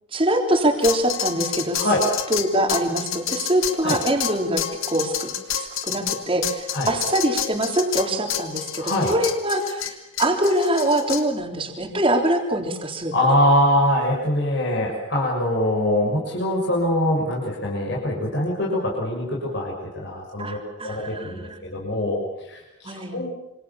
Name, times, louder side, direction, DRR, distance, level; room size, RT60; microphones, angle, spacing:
voice 1, 0.1-1.9 2.3-4.6 4.9-5.3 5.5-9.9 10.2-13.1 20.4-21.6 22.8-23.2, right 1 dB, 25° right, 3 dB, 3.6 m, -23 dB
sound 1, 0.8-11.2, left 10 dB, 85° left, 2.5 m, -29 dB
voice 2, 1.7-2.0 3.8-4.0 6.7-7.0 8.8-9.1 13.1-20.6 20.8-23.3, left 1 dB, 55° left, -2 dB, 6.5 m, -23 dB
27.0 x 26.0 x 7.2 m, 0.95 s
head